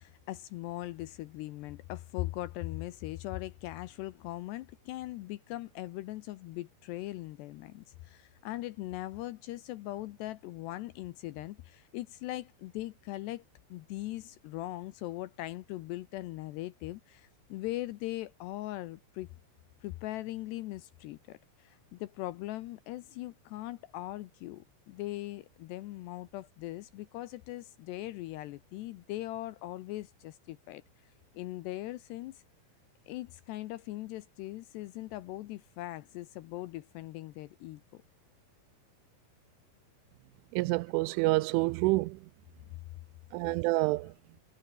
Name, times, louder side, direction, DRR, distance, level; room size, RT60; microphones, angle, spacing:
voice 1, 0.0-13.4 13.7-19.3 19.8-30.8 31.3-32.4 33.1-38.0 44.0-44.1, left 16 dB, 80° left, 2.6 m, -40 dB
voice 2, 40.5-42.2 43.3-44.1, right 22 dB, 85° right, 3.1 m, -28 dB
omnidirectional pair, 5.6 m